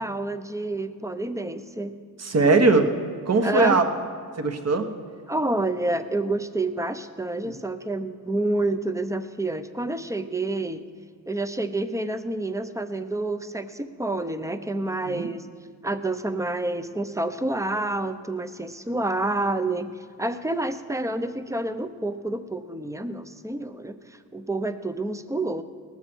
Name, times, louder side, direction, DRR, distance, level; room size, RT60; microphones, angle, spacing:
voice 1, 0.0-1.9 3.4-3.8 5.3-10.8 11.3-15.5 15.8-19.9 20.2-25.6, right 2 dB, 10° right, 10 dB, 0.6 m, -28 dB
voice 2, 2.2-2.9 3.3-3.8 4.4-4.9 7.4-7.5 15.1-15.3, right 3 dB, 45° right, 6 dB, 1.2 m, -20 dB
19.0 x 7.2 x 6.1 m, 2.2 s
wide cardioid pair, 115°, 37 cm